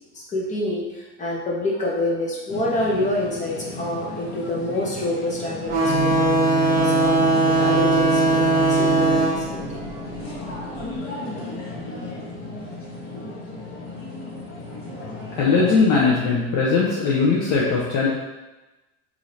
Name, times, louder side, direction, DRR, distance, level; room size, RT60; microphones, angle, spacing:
voice 1, 0.1-5.9 6.2-9.6, left 1 dB, 25° left, -4 dB, 1.0 m, -27 dB
sound 1, 2.5-15.8, left 2 dB, 40° left, 1.4 m, -35 dB
sound 2, 5.7-10.8, right 3 dB, 25° right, 0.9 m, -20 dB
voice 2, 15.4-18.1, left 4 dB, 60° left, -5 dB, 0.9 m, -19 dB
5.0 x 2.8 x 2.8 m, 1.1 s
cardioid pair, 140°, 31 cm